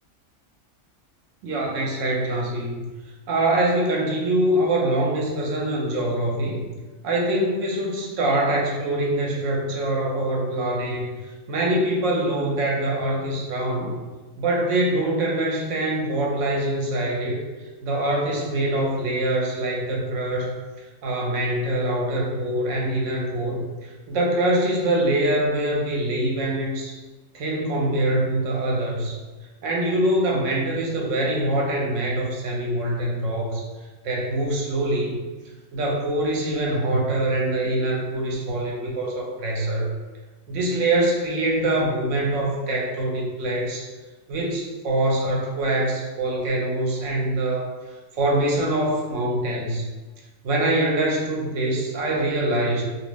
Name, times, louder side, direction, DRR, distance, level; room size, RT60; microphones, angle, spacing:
voice 1, 1.4-2.9 3.3-6.6 7.0-11.1 11.5-14.0 14.4-17.4 17.8-20.5 21.0-27.0 27.3-29.1 29.6-33.6 34.0-35.2 35.7-39.9 40.5-43.9 44.3-47.7 48.1-49.9 50.4-52.8, right 1 dB, 65° right, -2 dB, 0.9 m, -24 dB
2.5 x 2.0 x 3.3 m, 1.2 s
omnidirectional pair, 1.5 m